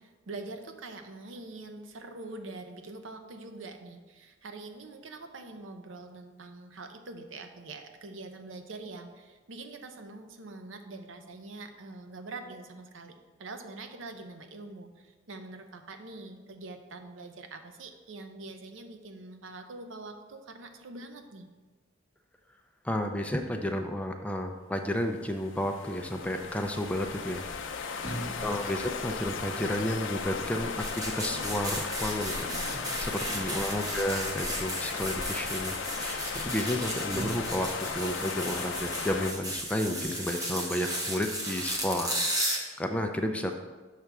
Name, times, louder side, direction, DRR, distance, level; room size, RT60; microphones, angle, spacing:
voice 1, 0.0-13.1 13.4-21.5 28.0-28.7 33.2-33.9, right 2 dB, 80° right, 6 dB, 0.7 m, -44 dB
voice 2, 22.8-27.4 28.4-32.5 32.7-42.2 42.5-43.5, left 1 dB, 5° left, 4 dB, 0.3 m, -32 dB
sound 1, 25.1-39.3, left 5 dB, 75° left, 0.5 m, -36 dB
sound 2, 28.0-29.6 30.3-32.0 32.4-34.4 35.1-35.9 36.4-36.5 37.1-38.8 40.0-40.1, right 1 dB, 45° right, 1.3 m, -44 dB
sound 3, 30.8-42.6, right 1 dB, 20° right, 1.0 m, -35 dB
6.5 x 3.4 x 6.0 m, 1.3 s
head